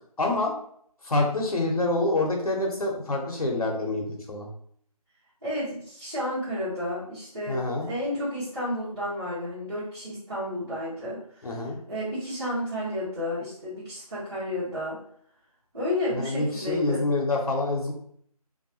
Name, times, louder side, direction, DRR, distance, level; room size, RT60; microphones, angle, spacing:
voice 1, 0.2-0.5 1.0-4.5 7.5-7.9 11.4-11.8 16.1-17.9, left 2 dB, 70° left, 0 dB, 0.7 m, -26 dB
voice 2, 5.4-11.6 11.9-15.0 15.7-17.0, left 1 dB, 40° right, -14 dB, 1.3 m, -31 dB
2.6 x 2.2 x 2.7 m, 0.64 s
figure-of-eight pair, 180°, 20 cm